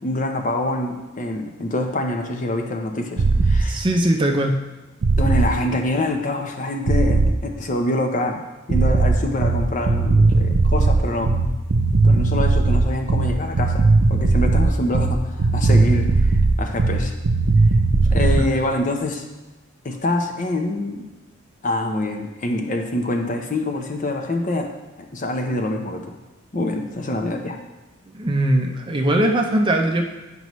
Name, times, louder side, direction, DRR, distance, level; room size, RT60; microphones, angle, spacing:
voice 1, 0.0-3.9 5.2-11.3 12.0-17.1 18.1-19.2 19.8-21.1 21.6-24.7 25.1-26.1 26.5-27.6, left 1 dB, 40° left, 4 dB, 0.7 m, -25 dB
sound 1, 3.2-3.7 5.0-5.6 6.9-7.4 8.7-18.4, right 3 dB, 85° right, 0.5 m, -17 dB
voice 2, 3.6-4.6 18.4-18.5 28.1-30.0, right 1 dB, 25° right, 3 dB, 0.5 m, -20 dB
9.5 x 5.3 x 3.1 m, 1.1 s
head